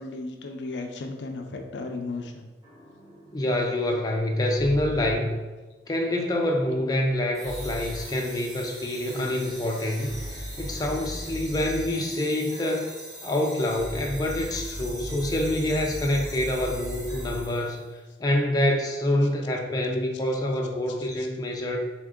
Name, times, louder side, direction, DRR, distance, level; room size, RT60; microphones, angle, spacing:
voice 1, 0.0-2.5 21.2-21.3, left 3 dB, 90° left, 4 dB, 0.5 m, -35 dB
sound 1, 2.6-5.4 7.4-8.2 9.1-12.1 13.7-17.6, equal, 20° right, 1.3 m, -38 dB
voice 2, 3.3-5.3 5.9-12.9 13.2-17.8 18.2-21.8, left 1 dB, 20° left, 1 dB, 0.4 m, -26 dB
sound 2, 7.3-17.9, right 1 dB, 60° right, 1.2 m, -42 dB
3.6 x 2.8 x 3.6 m, 1.2 s
head